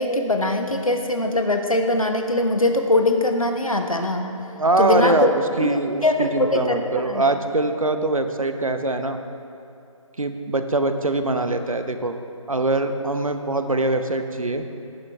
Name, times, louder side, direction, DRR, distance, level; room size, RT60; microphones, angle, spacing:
voice 1, 0.0-4.2 4.8-5.3 5.6-7.2, left 2 dB, 80° left, 5 dB, 1.2 m, -22 dB
voice 2, 4.6-9.2 10.2-12.1 12.5-14.6, right 2 dB, 75° right, 8 dB, 0.8 m, -23 dB
11.5 x 10.5 x 3.5 m, 2.8 s
figure-of-eight pair, 155°, 18 cm